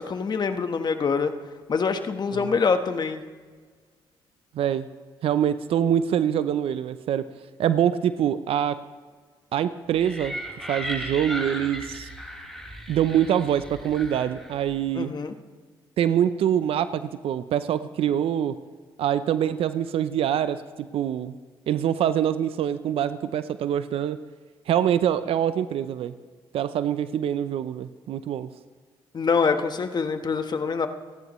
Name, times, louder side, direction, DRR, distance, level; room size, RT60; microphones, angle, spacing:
voice 1, 0.0-1.3 1.7-3.2 14.9-15.3 29.1-30.9, left 5 dB, 45° left, 8 dB, 1.3 m, -25 dB
voice 2, 4.5-4.9 5.2-7.3 7.6-8.8 9.5-10.4 10.7-12.1 12.9-15.1 16.0-18.6 19.0-21.4 21.7-24.2 24.7-26.1 26.5-28.5, right 10 dB, 70° right, 13 dB, 0.6 m, -24 dB
sound 1, 9.9-14.7, equal, ahead, 5.4 m, -36 dB
30.0 x 10.5 x 3.1 m, 1.5 s
supercardioid pair, 65°, 10 cm